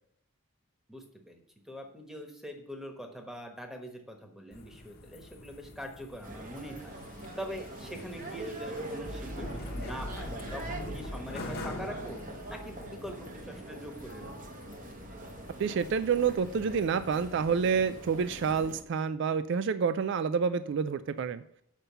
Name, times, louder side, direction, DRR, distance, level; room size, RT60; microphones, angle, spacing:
voice 1, 0.9-6.9 7.4-12.2 12.5-14.5, equal, ahead, 3 dB, 1.2 m, -43 dB
sound 1, 4.5-18.7, left 1 dB, 45° left, 1.1 m, -44 dB
sound 2, 6.2-18.8, right 1 dB, 40° right, 1.0 m, -43 dB
voice 2, 15.6-21.4, right 6 dB, 55° right, 13 dB, 0.3 m, -28 dB
7.4 x 5.5 x 6.8 m, 0.71 s
head